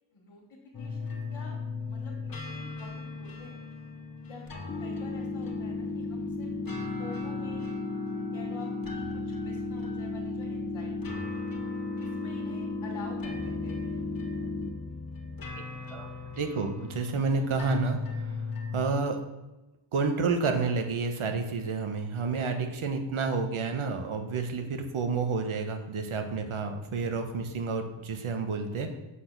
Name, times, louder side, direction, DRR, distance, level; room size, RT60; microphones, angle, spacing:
voice 1, 0.1-2.1 2.4-3.6 4.2-6.7 7.0-7.7 8.1-11.5 12.0-14.0, left 3 dB, 70° left, -3 dB, 1.8 m, -48 dB
sound 1, 0.7-18.9, left 4 dB, 45° left, 1.0 m, -40 dB
sound 2, 4.7-14.7, left 3 dB, 25° left, 0.7 m, -34 dB
voice 2, 15.9-18.3 18.7-19.2 19.9-29.0, right 4 dB, 85° right, 5 dB, 1.1 m, -30 dB
7.3 x 4.3 x 5.8 m, 1.0 s
wide cardioid pair, 100°, 48 cm